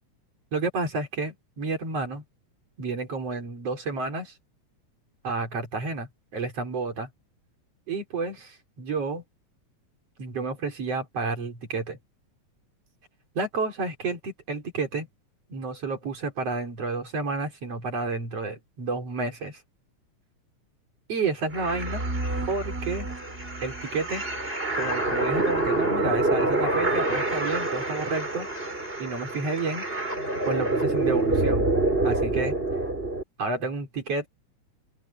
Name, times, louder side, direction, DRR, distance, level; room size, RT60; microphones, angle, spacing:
voice 1, 0.5-2.2 2.8-4.3 5.2-7.1 7.9-9.2 10.2-12.0 13.3-15.1 15.5-19.6 21.1-22.0 22.5-23.1 23.6-24.2 24.7-28.5 29.0-29.8 30.5-31.7 32.0-32.5 33.4-34.3, right 3 dB, 55° right, 5.1 m, -30 dB
sound 1, 21.5-33.2, right 2 dB, 15° right, 6.0 m, -27 dB
open air
omnidirectional pair, 3.4 m